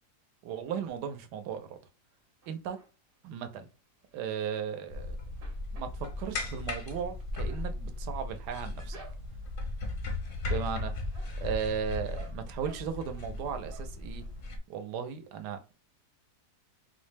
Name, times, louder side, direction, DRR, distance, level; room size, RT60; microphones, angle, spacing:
voice 1, 0.4-1.7 2.5-2.8 3.2-3.7 4.1-5.2 5.7-9.0 10.4-10.9 11.4-14.3 14.7-15.7, right 7 dB, 85° right, 1.2 m, -36 dB
sound 1, 2.4-3.2 3.6-5.0 5.2-9.6 10.1-10.5 10.8-13.3 13.7-14.3 14.7-14.8 15.1-15.2, right 3 dB, 45° right, 0.8 m, -56 dB
sound 2, 4.9-14.6, left 2 dB, 60° left, 0.5 m, -37 dB
4.2 x 2.1 x 3.2 m
omnidirectional pair, 1.7 m